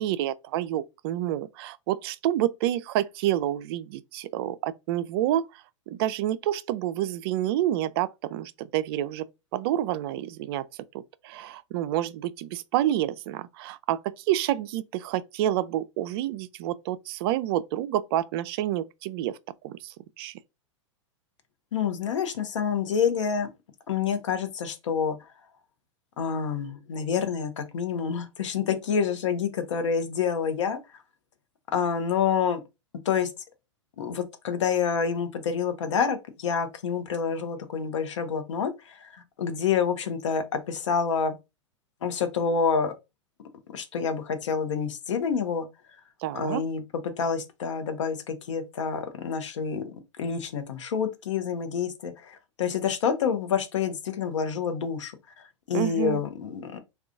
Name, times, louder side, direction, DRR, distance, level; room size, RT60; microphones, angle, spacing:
voice 1, 0.0-5.4 5.9-9.2 9.5-10.7 10.9-19.4 19.6-20.3 46.2-46.6 55.7-56.2, right 12 dB, 50° right, 0.4 m, -28 dB
voice 2, 21.7-23.5 23.9-25.3 26.2-31.0 31.7-32.6 33.0-33.3 34.0-41.4 42.0-42.9 43.7-45.7 46.3-46.8 47.2-56.8, left 6 dB, 75° left, 0.8 m, -28 dB
3.6 x 2.3 x 2.5 m
hypercardioid pair, 110°, 16 cm